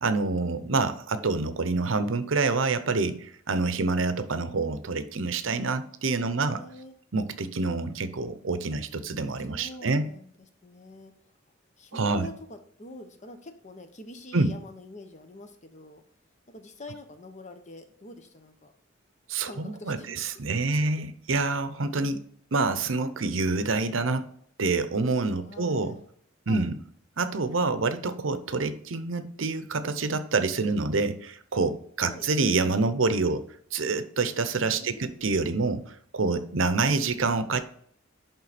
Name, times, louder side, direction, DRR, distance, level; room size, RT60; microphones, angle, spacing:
voice 1, 0.0-6.6 7.1-10.1 11.9-12.3 14.3-14.5 19.3-22.2 22.5-24.3 24.6-25.9 26.5-26.7 27.2-33.4 33.7-35.8 36.1-37.6, right 3 dB, 80° right, 11 dB, 0.8 m, -27 dB
voice 2, 6.1-6.9 8.7-8.8 9.5-10.3 10.6-11.1 11.8-16.0 16.5-18.7 19.4-20.2 20.7-20.9 25.4-26.0 26.5-26.7 32.0-32.3 34.7-35.3 36.4-36.5, left 1 dB, 40° left, 7 dB, 1.0 m, -45 dB
11.0 x 3.8 x 4.2 m, 0.63 s
head